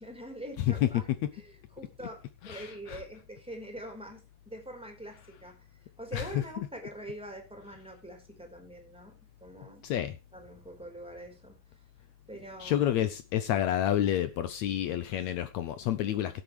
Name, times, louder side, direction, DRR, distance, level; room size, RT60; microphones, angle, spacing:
voice 1, 0.0-1.0 1.3-5.7 6.0-9.8 10.3-11.6 12.3-12.9, right 1 dB, ahead, 3.9 m, -44 dB
voice 2, 2.4-3.0 6.1-6.4 9.8-10.2 12.6-16.4, left 11 dB, 75° left, 1.8 m, -29 dB
17.0 x 8.4 x 3.3 m
omnidirectional pair, 3.7 m